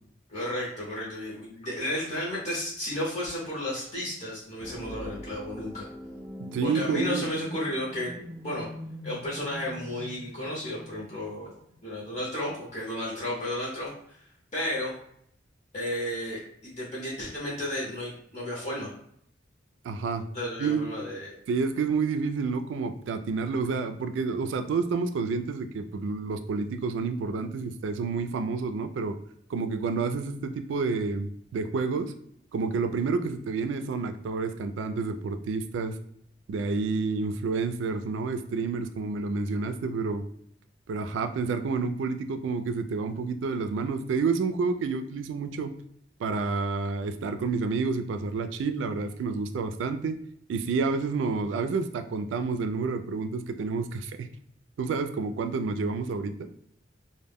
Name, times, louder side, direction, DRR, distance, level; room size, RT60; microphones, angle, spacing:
voice 1, 0.3-5.9 6.6-8.1 8.4-8.7 9.0-11.6 11.8-14.2 14.5-14.9 15.7-18.9 20.3-21.4, left 1 dB, 40° left, -6 dB, 0.8 m, -33 dB
sound 1, 4.6-12.3, equal, 5° right, 0.4 m, -42 dB
voice 2, 6.4-7.3 19.8-20.2 20.6-20.9 21.5-29.2 29.5-32.1 32.5-36.0 36.5-40.2 40.9-45.7 46.2-50.1 50.5-54.3 54.8-56.5, right 4 dB, 75° right, 8 dB, 0.3 m, -29 dB
2.1 x 2.1 x 3.4 m, 0.69 s
head